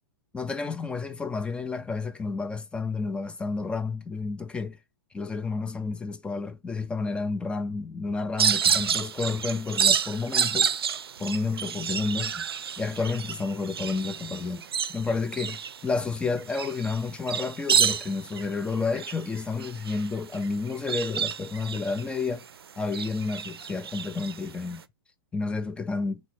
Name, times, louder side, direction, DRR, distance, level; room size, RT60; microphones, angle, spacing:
voice 1, 0.3-4.8 5.1-10.8 11.2-12.4 12.8-14.6 14.9-22.4 22.8-24.8 25.3-26.2, left 4 dB, 10° left, 0.3 m, -30 dB
sound 1, 8.4-22.5 22.8-24.8, right 7 dB, 75° right, 0.4 m, -29 dB
3.2 x 3.1 x 4.5 m
figure-of-eight pair, 110°, 13 cm